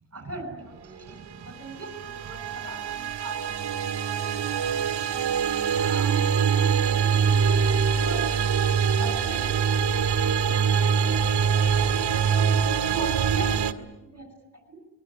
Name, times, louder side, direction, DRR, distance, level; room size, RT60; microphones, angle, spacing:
voice 1, 0.1-3.5 3.9-6.5 7.0-8.4 8.9-9.8 12.8-13.9 14.1-14.3 14.7-14.8, right 1 dB, 35° right, 9 dB, 6.3 m, -41 dB
sound 1, 1.5-13.7, right 7 dB, 65° right, 1.9 m, -24 dB
24.5 x 21.5 x 9.6 m, 0.98 s
wide cardioid pair, 145°, 42 cm